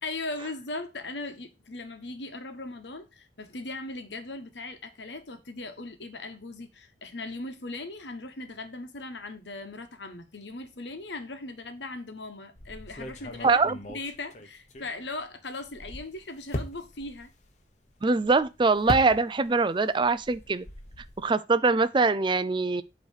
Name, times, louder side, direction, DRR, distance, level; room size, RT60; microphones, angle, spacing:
voice 1, 0.0-17.3, left 2 dB, 75° left, 1.2 m, -39 dB
sound 1, 12.6-15.3 15.6-19.7 19.9-21.2, left 1 dB, 40° left, 1.1 m, -39 dB
voice 2, 13.4-13.7 18.0-20.6 21.2-22.8, right 3 dB, 25° right, 0.4 m, -23 dB
8.4 x 3.2 x 6.4 m
head